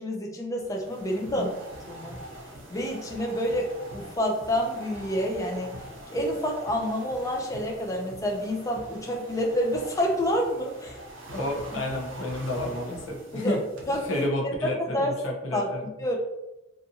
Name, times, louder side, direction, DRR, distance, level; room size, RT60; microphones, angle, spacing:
voice 1, 0.0-1.5 1.9-2.2 2.7-5.8 6.1-11.0 11.7-11.8 13.3-13.6 13.9-14.5 14.8-15.2 15.5-15.7 16.0-16.2, equal, 15° left, 0 dB, 0.4 m, -28 dB
sound 1, 0.6-14.3, right 1 dB, 65° right, 0.6 m, -43 dB
voice 2, 11.3-13.6 14.0-15.8, left 1 dB, 70° left, 0 dB, 0.6 m, -30 dB
2.5 x 2.4 x 2.7 m, 0.98 s
head